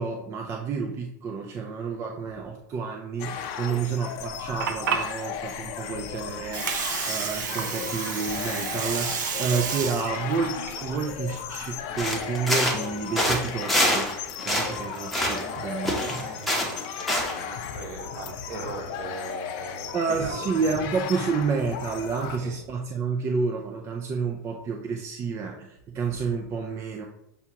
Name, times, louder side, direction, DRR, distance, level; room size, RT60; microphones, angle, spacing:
voice 1, 0.0-16.3 19.9-27.1, right 5 dB, 30° right, 2 dB, 0.4 m, -30 dB
sound 1, 3.2-22.4, left 8 dB, 50° left, 0.6 m, -36 dB
Water, 4.2-12.2, right 7 dB, 80° right, 0.6 m, -32 dB
voice 2, 5.8-6.2 14.4-20.7 22.2-22.6, right 2 dB, 55° right, 0 dB, 1.4 m, -40 dB
sound 2, 12.0-12.9 13.2-14.1 14.4-15.6 15.8-17.4, equal, ahead, 0.9 m, -25 dB
6.8 x 2.3 x 2.9 m, 0.81 s
hypercardioid pair, 125°, 10 cm